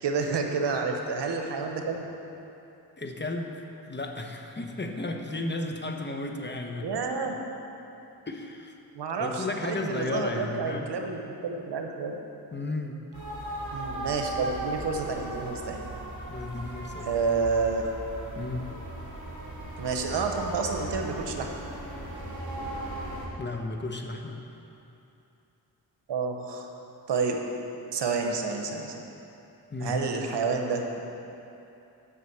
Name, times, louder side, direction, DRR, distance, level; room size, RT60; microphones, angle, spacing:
voice 1, 0.0-2.1 6.8-7.3 8.9-12.2 13.7-15.8 17.1-17.9 19.8-21.5 26.1-26.7 27.1-27.4 27.9-29.0 29.8-31.0, right 4 dB, 90° right, 3 dB, 1.0 m, -29 dB
voice 2, 3.0-7.0 8.3-8.8 9.2-10.9 12.5-13.0 16.3-17.1 18.3-18.7 23.4-24.4 29.7-30.0, left 2 dB, 25° left, 3 dB, 1.0 m, -34 dB
sound 1, 13.1-23.3, right 1 dB, 45° right, 2.5 m, -37 dB
8.5 x 6.1 x 7.8 m, 2.9 s
cardioid pair, 70°, 40 cm